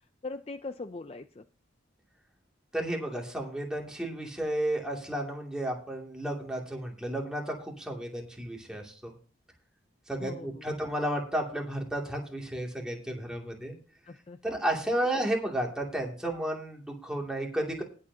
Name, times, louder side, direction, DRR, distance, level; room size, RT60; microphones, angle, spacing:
voice 1, 0.2-1.4 10.2-10.7 14.1-14.4, left 3 dB, 30° left, 10 dB, 0.5 m, -40 dB
voice 2, 2.7-9.1 10.1-13.7 14.4-17.8, right 1 dB, 5° right, -1 dB, 2.5 m, -32 dB
19.5 x 7.5 x 2.8 m, 0.37 s
head